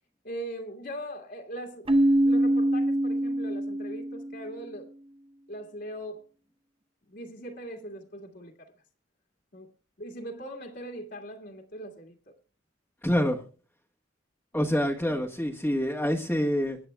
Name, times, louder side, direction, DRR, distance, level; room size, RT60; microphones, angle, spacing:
voice 1, 0.2-1.9 2.2-4.9 5.5-6.2 7.1-8.7 9.5-9.7 10.0-12.3 15.1-15.2, right 1 dB, 60° left, 2.0 m, -40 dB
Keyboard (musical), 1.9-4.5, right 1 dB, 30° right, 1.1 m, -24 dB
voice 2, 13.0-13.4 14.5-16.8, equal, 10° left, 1.3 m, -26 dB
25.0 x 10.5 x 2.3 m
head